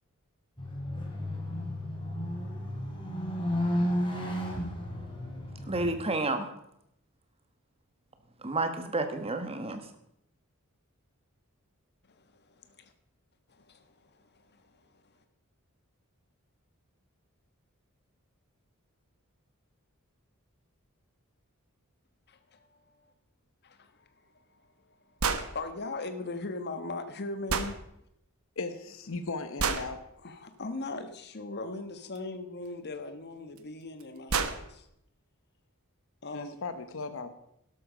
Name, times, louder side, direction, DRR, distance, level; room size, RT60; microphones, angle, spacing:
sound 1, 0.6-5.9, equal, 25° left, 3.3 m, -33 dB
voice 1, 5.7-6.5 8.4-9.8, right 2 dB, 25° right, 8 dB, 1.5 m, -30 dB
voice 2, 12.1-12.9 13.5-14.9 22.3-23.0 23.6-24.1 24.5-25.0 25.4-27.8 30.2-34.9 36.2-36.6, left 3 dB, 50° left, 9 dB, 1.3 m, -40 dB
sound 2, 25.2-25.5 27.5-27.7 29.6-29.9 32.1-32.2 33.6-33.7 34.0-34.1 34.3-34.6, right 5 dB, 70° right, 1.2 m, -28 dB
voice 3, 28.6-30.0 36.3-37.3, left 3 dB, 65° left, 9 dB, 1.0 m, -37 dB
12.5 x 12.0 x 5.1 m, 0.77 s
head